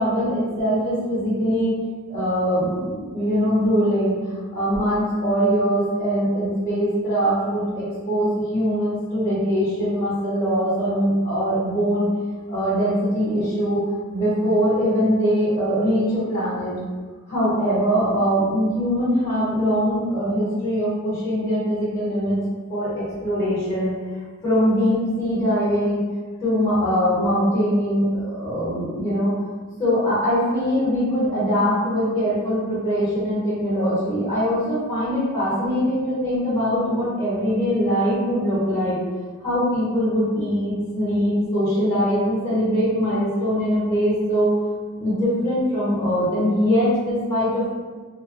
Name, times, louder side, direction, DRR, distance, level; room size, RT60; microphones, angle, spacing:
voice 1, 0.0-1.8 2.1-12.1 12.5-13.8 14.1-16.7 17.3-22.4 22.7-23.9 24.4-26.0 26.4-29.3 29.8-39.0 39.4-44.6 45.0-47.8, equal, 15° left, -11 dB, 0.9 m, -22 dB
2.5 x 2.1 x 2.4 m, 1.4 s
head